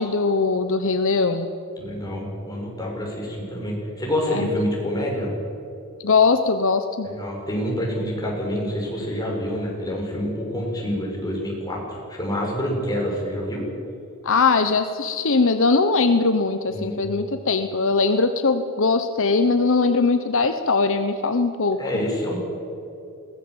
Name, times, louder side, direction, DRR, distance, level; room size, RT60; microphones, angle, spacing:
voice 1, 0.0-1.5 4.3-4.5 6.0-7.1 14.2-22.1, left 4 dB, 60° left, 9 dB, 1.0 m, -21 dB
voice 2, 1.8-5.3 7.0-13.6 16.7-17.0 21.8-22.4, equal, 15° left, -2 dB, 6.1 m, -27 dB
21.5 x 18.0 x 8.0 m, 2.7 s
head